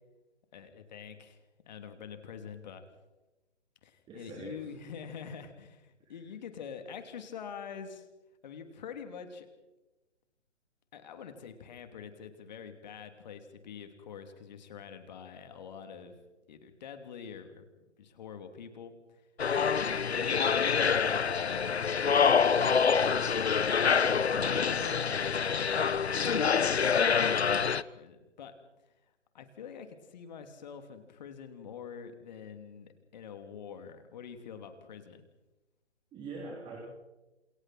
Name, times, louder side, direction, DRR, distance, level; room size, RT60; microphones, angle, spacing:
voice 1, 0.5-1.4 1.7-2.8 3.8-8.1 8.4-9.5 10.9-16.2 16.5-17.7 18.0-19.2 19.6-21.8 23.8-28.5 29.3-35.3, left 7 dB, 40° left, 7 dB, 3.1 m, -46 dB
voice 2, 4.1-4.6 6.0-6.2 36.1-36.8, right 3 dB, 15° right, -2 dB, 3.3 m, -43 dB
sound 1, 19.4-27.8, left 6 dB, 65° left, 1.0 m, -26 dB
29.5 x 28.0 x 4.4 m, 1.1 s
figure-of-eight pair, 135°, 35 cm